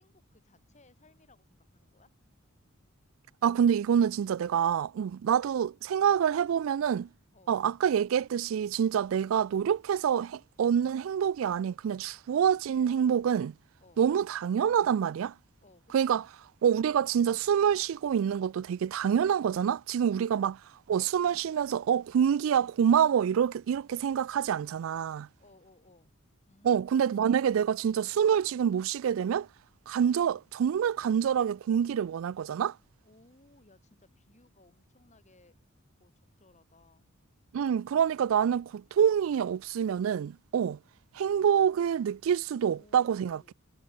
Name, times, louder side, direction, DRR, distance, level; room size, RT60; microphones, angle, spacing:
voice 1, 0.0-2.1 7.3-7.6 13.8-14.0 15.6-16.2 20.1-20.3 25.4-26.2 26.4-27.0 33.0-35.6 36.0-37.1 37.6-37.8 42.6-43.5, left 2 dB, 35° left, 2.6 m, -62 dB
voice 2, 3.4-7.1 7.5-13.5 14.0-15.3 15.9-16.2 16.6-20.5 20.9-25.3 26.6-29.5 29.9-32.7 37.5-40.8 41.1-43.5, right 8 dB, 70° right, 0.3 m, -26 dB
head